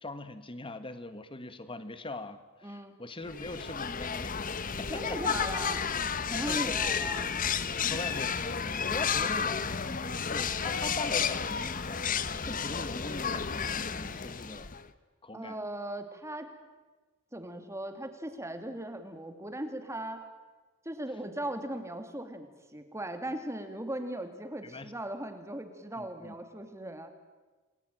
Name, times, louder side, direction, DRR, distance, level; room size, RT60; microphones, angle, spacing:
voice 1, 0.0-4.4 4.8-5.2 6.5-6.8 7.8-12.0 12.4-14.7 15.2-15.6 24.6-24.9 26.0-26.3, left 2 dB, 25° left, 12 dB, 1.6 m, -41 dB
voice 2, 2.6-2.9 4.9-5.8 6.2-7.3 15.3-16.5 17.3-20.2 20.8-27.1, right 1 dB, 15° right, 7 dB, 2.6 m, -38 dB
sound 1, 3.3-14.9, left 6 dB, 40° left, 1.1 m, -32 dB
29.0 x 20.5 x 9.3 m, 1.3 s
head